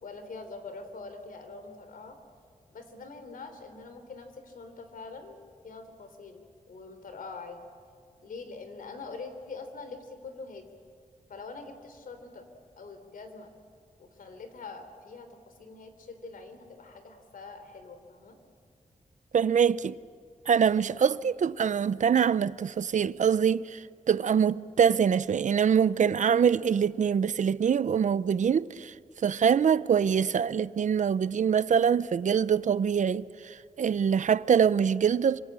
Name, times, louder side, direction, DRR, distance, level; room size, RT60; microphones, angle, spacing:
voice 1, 0.0-2.2 2.7-5.4 5.6-6.4 6.7-7.6 8.2-10.7 11.3-12.5 12.8-13.5 14.0-18.4, left 4 dB, 80° left, 3.4 m, -44 dB
voice 2, 19.3-20.0 20.5-28.9 29.2-35.4, right 7 dB, 60° right, 0.6 m, -24 dB
26.5 x 25.5 x 8.8 m
wide cardioid pair, 135°, 14 cm